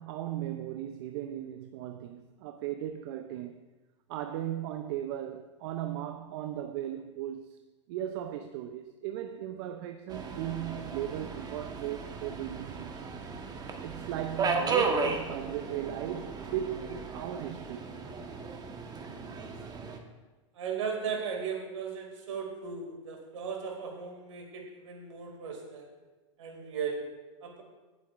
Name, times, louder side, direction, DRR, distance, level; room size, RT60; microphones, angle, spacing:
voice 1, 0.0-3.6 4.1-7.6 7.9-13.0 13.8-17.9, right 11 dB, 55° right, 0.7 m, -37 dB
Subway metro underground, 10.1-20.0, right 4 dB, 25° right, 1.3 m, -35 dB
voice 2, 20.5-25.9 26.4-27.6, right 6 dB, 75° right, 2.7 m, -37 dB
22.0 x 7.7 x 2.6 m
hypercardioid pair, 100°, 16 cm